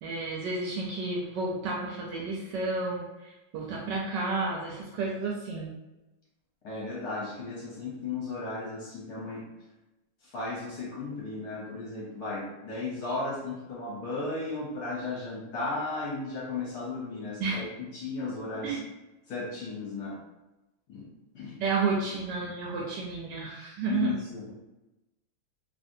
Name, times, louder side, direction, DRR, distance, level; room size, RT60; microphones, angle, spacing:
voice 1, 0.0-5.7 17.4-17.6 18.6-18.8 21.6-24.1, right 3 dB, 75° right, -2 dB, 1.1 m, -31 dB
voice 2, 6.6-9.4 10.2-18.8 19.3-20.2 20.9-21.1 21.3-21.6 23.9-24.5, left 3 dB, 60° left, -5 dB, 1.2 m, -35 dB
3.1 x 2.6 x 2.6 m, 0.99 s
omnidirectional pair, 2.2 m